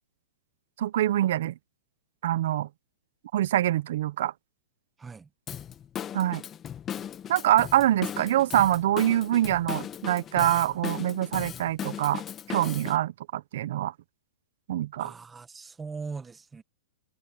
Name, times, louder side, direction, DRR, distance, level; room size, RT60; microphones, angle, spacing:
voice 1, 0.8-1.5 2.2-2.7 3.3-4.3 6.1-6.4 7.3-12.2 12.5-13.9 14.7-15.1, right 13 dB, 60° right, 0.6 m, -25 dB
voice 2, 5.0-5.3 15.0-16.6, right 4 dB, 10° right, 1.2 m, -40 dB
Drum kit / Drum, 5.5-13.0, left 9 dB, 20° left, 1.1 m, -37 dB
hypercardioid pair, 150°, 0 cm